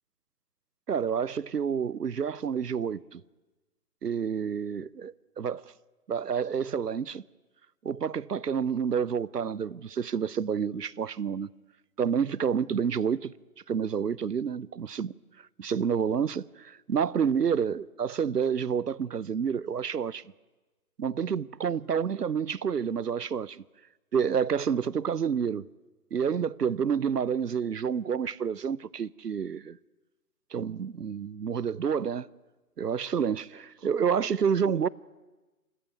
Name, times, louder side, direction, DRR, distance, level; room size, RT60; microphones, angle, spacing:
voice 1, 0.9-3.2 4.0-5.7 6.1-7.2 7.8-11.5 12.0-13.3 13.7-20.2 21.0-23.6 24.1-25.6 26.1-29.8 30.5-32.3 32.8-34.9, right 7 dB, 85° right, 0.7 m, -29 dB
26.5 x 15.0 x 9.5 m
figure-of-eight pair, 140°, 47 cm